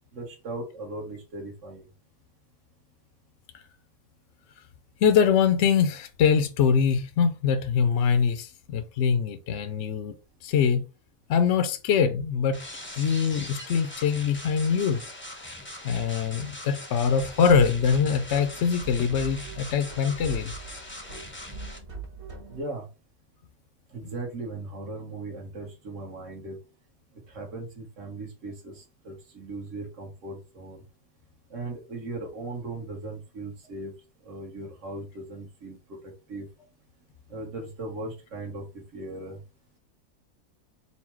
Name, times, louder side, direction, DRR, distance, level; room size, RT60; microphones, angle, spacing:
voice 1, 0.1-1.8 22.5-22.9 23.9-26.6 27.3-30.8 31.5-33.9 34.2-35.8 36.3-36.5 37.3-38.6 38.9-39.4, right 2 dB, 60° right, 1.6 m, -38 dB
voice 2, 5.0-10.1 10.4-10.8 11.3-12.6 13.0-15.0 15.8-20.5, left 6 dB, 65° left, 0.8 m, -23 dB
sound 1, 12.5-21.8, left 1 dB, 15° left, 0.5 m, -41 dB
sound 2, 16.9-22.6, right 4 dB, 80° right, 2.1 m, -41 dB
4.2 x 2.2 x 4.4 m
omnidirectional pair, 1.5 m